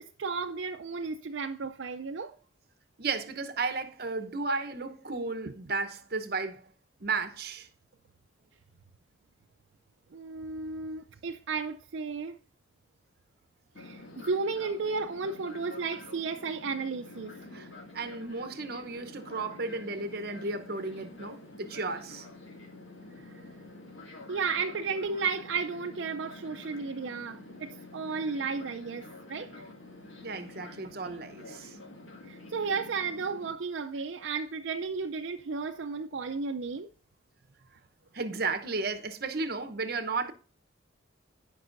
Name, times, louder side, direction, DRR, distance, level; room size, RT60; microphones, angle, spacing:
voice 1, 0.0-2.3 10.1-12.4 13.8-17.3 24.3-29.5 32.2-36.9, right 4 dB, 70° right, 0.5 m, -33 dB
voice 2, 3.0-6.6 7.0-7.7 17.5-17.7 17.9-22.3 30.2-31.8 38.1-40.3, right 3 dB, 50° right, 0.9 m, -34 dB
Fixed-wing aircraft airplane, 13.8-33.5, left 2 dB, 85° left, 2.2 m, -48 dB
16.0 x 5.4 x 2.6 m
head